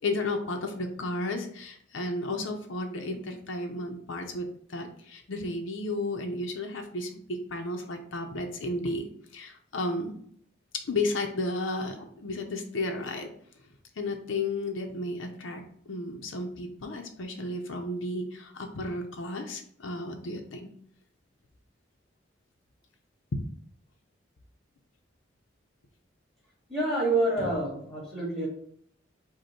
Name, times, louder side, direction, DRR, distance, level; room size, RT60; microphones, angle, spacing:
voice 1, 0.0-9.0 9.3-10.2 10.7-13.3 14.0-20.7, left 2 dB, 85° left, 4 dB, 0.6 m, -33 dB
voice 2, 26.7-28.5, right 2 dB, 5° left, -5 dB, 1.7 m, -27 dB
5.1 x 2.2 x 4.3 m, 0.64 s
head